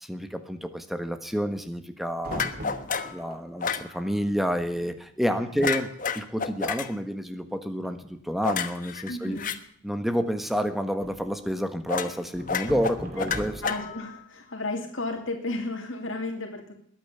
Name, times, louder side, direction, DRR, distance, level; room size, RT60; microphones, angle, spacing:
voice 1, 0.0-2.4 3.1-5.9 6.1-9.4 9.8-13.5, equal, ahead, 8 dB, 1.4 m, -29 dB
sound 1, 2.2-3.4 4.2-4.3 4.5-4.9 5.2-5.4 5.9-6.0 6.4-6.8 7.8-8.4 10.4-11.4 12.3-14.0, equal, 45° right, 3.0 m, -40 dB
sound 2, 2.3-3.2 3.6-3.9 5.6-6.9 8.4-9.6 11.9-12.2 12.5-14.2, left 6 dB, 40° left, 1.2 m, -30 dB
voice 2, 9.1-9.5 13.2-13.3 13.6-16.7, left 2 dB, 80° left, 2 dB, 2.6 m, -33 dB
21.5 x 9.3 x 6.9 m, 0.67 s
head